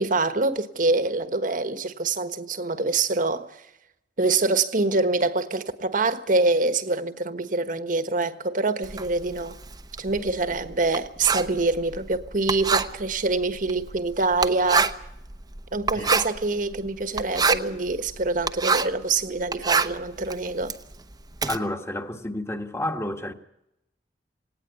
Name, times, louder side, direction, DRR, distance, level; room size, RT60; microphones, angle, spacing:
voice 1, 0.0-3.5 4.2-9.6 10.0-14.9 15.7-20.7, right 3 dB, 50° right, 1.4 m, -25 dB
Writing, 8.8-19.0 19.4-21.6, right 4 dB, 20° right, 0.9 m, -27 dB
voice 2, 21.5-23.3, left 1 dB, 15° left, 1.5 m, -30 dB
18.5 x 18.5 x 8.3 m
head